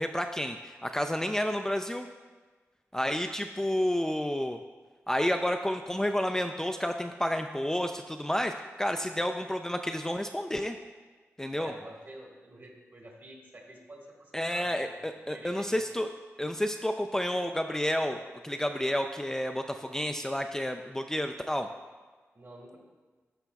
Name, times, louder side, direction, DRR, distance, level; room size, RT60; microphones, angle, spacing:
voice 1, 0.0-2.1 2.9-4.6 5.1-8.5 8.8-10.8 11.4-11.7 14.3-16.1 16.4-21.7, equal, 10° left, 5 dB, 0.3 m, -30 dB
voice 2, 11.5-15.0 15.3-15.8 22.3-22.8, right 1 dB, 45° right, 0 dB, 1.7 m, -48 dB
12.5 x 5.0 x 2.3 m, 1.4 s
cardioid pair, 70°, 5 cm